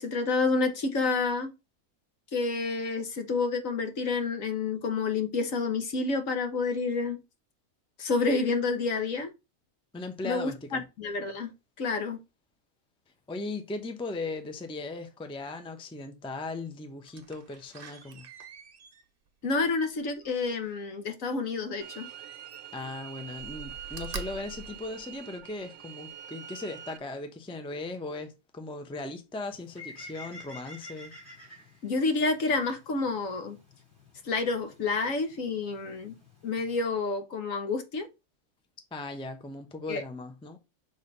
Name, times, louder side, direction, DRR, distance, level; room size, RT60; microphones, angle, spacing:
voice 1, 0.0-1.5 2.3-7.2 8.0-9.3 10.2-11.5 11.8-12.2 19.4-22.1 31.8-33.6 34.2-36.1 36.4-38.1 39.9-40.0, left 4 dB, 65° left, 1.5 m, -29 dB
voice 2, 9.9-10.8 13.3-18.3 22.7-31.1 38.9-40.6, left 2 dB, 5° left, 0.6 m, -38 dB
Slam, 17.0-20.9 22.0-22.9 23.3-25.6 26.1-26.2, right 4 dB, 45° right, 0.9 m, -45 dB
sound 1, 21.8-27.0, right 10 dB, 75° right, 1.1 m, -45 dB
Bird, 29.5-36.8, left 2 dB, 35° left, 4.5 m, -51 dB
6.5 x 3.5 x 5.3 m
omnidirectional pair, 1.5 m